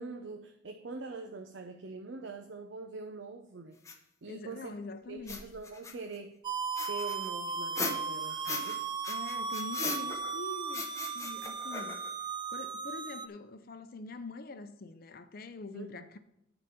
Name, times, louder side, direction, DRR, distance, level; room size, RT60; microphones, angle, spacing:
voice 1, 0.0-3.8 4.2-4.8 5.1-6.4 6.9-8.8 15.7-16.0, right 3 dB, 80° right, 0.7 m, -43 dB
sound 1, 3.8-3.9 5.2-6.2 6.8-8.8 9.0-10.4 10.7-12.2, left 4 dB, 15° left, 0.9 m, -38 dB
voice 2, 4.2-5.4 9.1-10.9 11.1-12.1 12.5-16.2, left 3 dB, 55° left, 0.6 m, -44 dB
sound 2, 6.4-13.3, right 5 dB, 25° right, 0.4 m, -36 dB
10.0 x 4.0 x 6.9 m
head